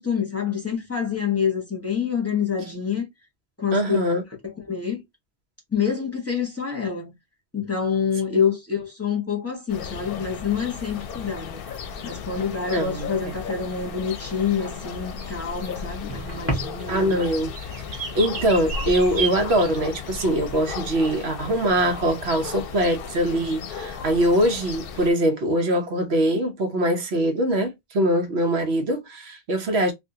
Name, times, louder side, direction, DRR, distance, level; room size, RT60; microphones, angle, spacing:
voice 1, 0.0-3.1 3.6-4.0 4.4-5.0 5.7-7.1 7.5-11.6 12.0-17.2, left 7 dB, 15° left, 1.0 m, -27 dB
voice 2, 3.7-4.2 12.7-13.1 16.9-17.5 18.1-29.9, equal, 90° right, 1.1 m, -22 dB
sound 1, 9.7-25.1, left 6 dB, 65° left, 0.7 m, -35 dB
sound 2, 10.7-19.9, right 5 dB, 50° right, 1.0 m, -36 dB
sound 3, 14.6-22.7, right 1 dB, 15° right, 1.5 m, -39 dB
3.5 x 2.6 x 2.7 m
omnidirectional pair, 1.0 m